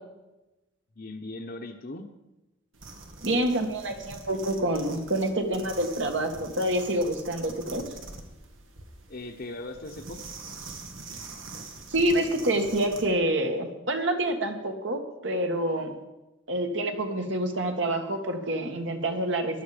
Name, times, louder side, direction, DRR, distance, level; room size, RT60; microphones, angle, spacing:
voice 1, 1.0-2.1 9.1-10.2, left 2 dB, 50° left, 4 dB, 1.0 m, -39 dB
sound 1, 2.7-13.1, right 3 dB, 90° right, 2.0 m, -44 dB
voice 2, 3.2-7.8 11.9-16.0 16.5-19.6, right 1 dB, 70° right, 4 dB, 1.9 m, -27 dB
16.0 x 11.5 x 5.1 m, 1.0 s
head